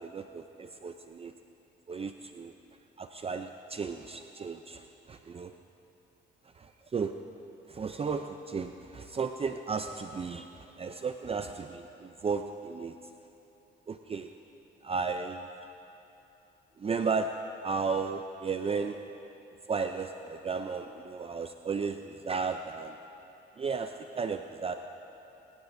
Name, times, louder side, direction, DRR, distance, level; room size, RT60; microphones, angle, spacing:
voice 1, 0.0-1.3 1.9-2.5 3.0-5.5 6.6-7.1 7.7-13.0 13.9-14.3 14.8-15.5 16.8-17.3 17.6-19.0 19.7-23.0 23.6-24.7, right 5 dB, 30° right, 7 dB, 0.5 m, -34 dB
22.0 x 16.0 x 2.7 m, 2.9 s
cardioid pair, 90°, 20 cm